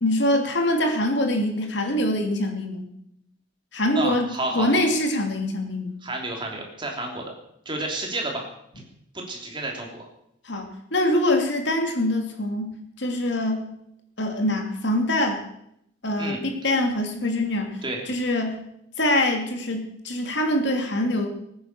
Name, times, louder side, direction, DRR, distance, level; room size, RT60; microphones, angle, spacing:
voice 1, 0.0-2.9 3.7-4.3 4.5-6.0 10.4-13.7 14.2-15.4 16.0-18.6 19.0-21.3, left 1 dB, 60° left, 4 dB, 2.7 m, -24 dB
voice 2, 3.9-4.7 6.0-7.3 7.6-8.5 8.7-8.8 9.1-10.1 16.2-16.4 17.8-18.0, right 2 dB, 25° right, 0 dB, 3.3 m, -30 dB
20.0 x 9.5 x 6.8 m, 0.77 s
head